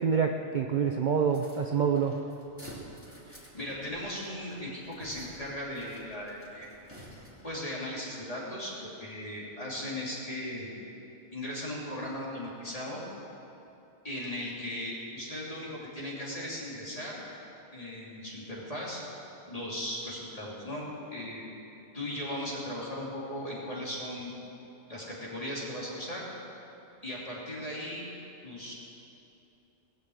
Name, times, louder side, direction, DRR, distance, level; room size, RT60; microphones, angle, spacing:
voice 1, 0.0-2.2, right 6 dB, 50° right, 4 dB, 0.7 m, -27 dB
sound 1, 1.3-7.6, equal, 10° right, 2.5 m, -51 dB
voice 2, 3.3-6.7 7.4-10.7 11.3-13.0 14.0-17.2 17.7-19.0 19.5-21.4 21.9-24.3 24.9-26.2 27.0-28.0 28.4-28.7, left 1 dB, 30° left, -6 dB, 3.1 m, -37 dB
19.0 x 6.8 x 7.9 m, 2.9 s
omnidirectional pair, 1.2 m